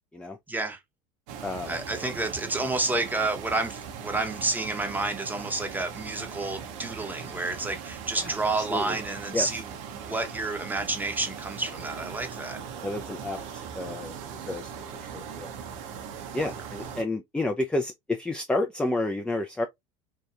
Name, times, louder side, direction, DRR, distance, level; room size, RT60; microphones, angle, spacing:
voice 1, 0.5-0.8 1.6-12.6 16.3-16.5, right 2 dB, 10° right, 0.7 m, -30 dB
sound 1, 1.3-17.0, right 7 dB, 70° right, 0.7 m, -40 dB
voice 2, 1.4-1.8 8.2-8.3 8.6-9.0 9.3-9.5 12.8-14.1 14.5-14.7 15.0-15.5 16.3-19.7, left 2 dB, 5° left, 0.3 m, -30 dB
2.8 x 2.3 x 2.3 m
hypercardioid pair, 85°, 17 cm